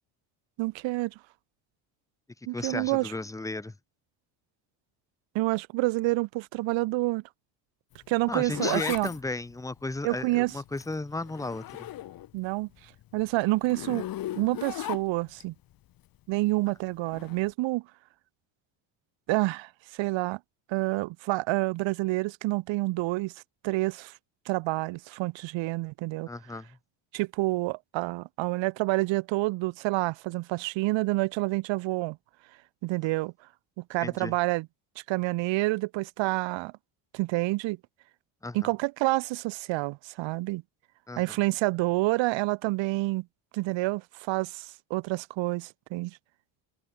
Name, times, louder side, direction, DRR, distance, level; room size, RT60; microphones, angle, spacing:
voice 1, 0.6-1.1 2.5-3.1 5.3-7.2 8.1-9.1 10.0-10.5 12.3-12.7 13.1-14.1 14.3-15.5 16.3-17.8 19.3-20.4 20.7-23.3 23.6-24.1 24.5-26.3 27.1-32.2 32.8-33.3 33.8-34.7 35.1-36.7 37.1-37.8 38.5-40.6 41.2-43.3 43.5-46.2, right 21 dB, 65° right, 0.7 m, -28 dB
voice 2, 2.5-3.7 8.3-11.9 26.3-26.8 34.0-34.3 38.4-38.7 41.1-41.2, left 2 dB, 5° left, 1.1 m, -34 dB
Zipper (clothing), 7.9-12.4 12.8-15.4 17.0-17.4, left 13 dB, 45° left, 1.0 m, -38 dB
cardioid pair, 130°, 48 cm